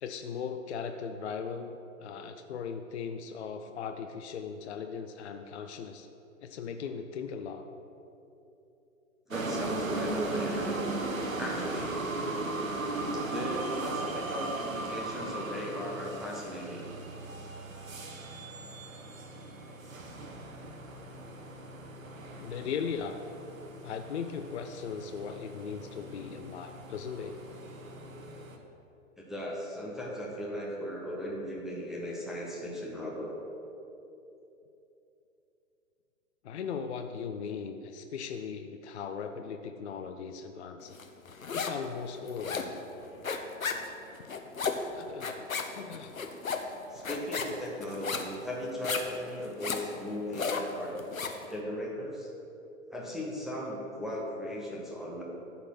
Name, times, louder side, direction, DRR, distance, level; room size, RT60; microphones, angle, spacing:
voice 1, 0.0-6.1 6.4-7.6 22.4-23.2 23.8-27.4 36.4-41.0 41.5-42.8 44.9-46.2, left 6 dB, 55° left, 7 dB, 0.6 m, -38 dB
voice 2, 9.3-10.9 11.4-12.0 13.1-16.9 29.2-33.4 46.9-50.9 51.5-52.3 52.9-55.2, equal, ahead, -4 dB, 0.6 m, -37 dB
sound 1, 9.3-28.6, right 2 dB, 75° right, 1.1 m, -37 dB
sound 2, 41.0-41.9 42.1-51.5, left 5 dB, 85° left, 0.8 m, -35 dB
12.5 x 4.3 x 5.8 m, 2.9 s
figure-of-eight pair, 115°, 40 cm